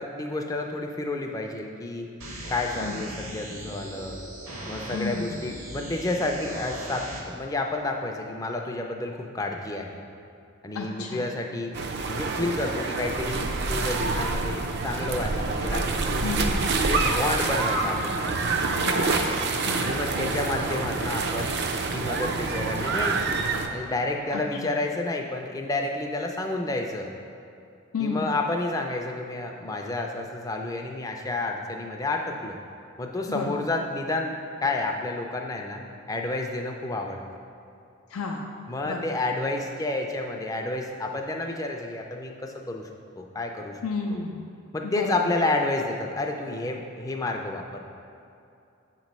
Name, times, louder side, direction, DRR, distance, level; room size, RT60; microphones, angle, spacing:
voice 1, 0.0-2.1 2.5-4.2 4.6-9.9 10.6-11.8 12.1-16.5 16.9-18.7 19.8-21.5 21.9-27.1 28.0-32.6 33.0-35.8 36.1-37.2 38.7-42.9 43.2-43.8 44.1-44.3 44.7-47.8, left 2 dB, 15° left, 2 dB, 0.4 m, -30 dB
sound 1, 2.2-7.2, right 1 dB, 80° right, 1.2 m, -39 dB
voice 2, 2.8-3.1 4.9-5.4 10.7-11.3 16.2-16.8 18.7-19.3 19.6-19.9 24.3-24.7 27.9-28.3 33.3-33.5 38.1-38.6 38.8-39.1 43.8-44.4 44.8-45.2, left 3 dB, 85° left, 0 dB, 0.4 m, -32 dB
sound 2, 11.7-23.7, right 3 dB, 50° right, 0.4 m, -27 dB
7.5 x 3.0 x 5.2 m, 2.6 s
head